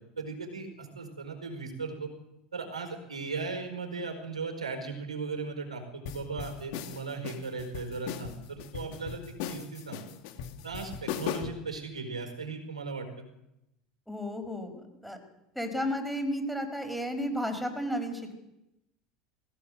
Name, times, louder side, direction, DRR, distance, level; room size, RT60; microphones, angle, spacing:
voice 1, 0.2-2.1 2.5-9.2 9.5-10.0 10.6-13.1, right 4 dB, 90° right, 5 dB, 4.6 m, -37 dB
sound 1, 6.1-11.7, left 8 dB, 60° left, 2.4 m, -38 dB
voice 2, 14.1-15.2 15.6-18.3, equal, ahead, 5 dB, 5.3 m, -33 dB
21.0 x 16.5 x 7.8 m, 0.88 s
hypercardioid pair, 80°, 3 cm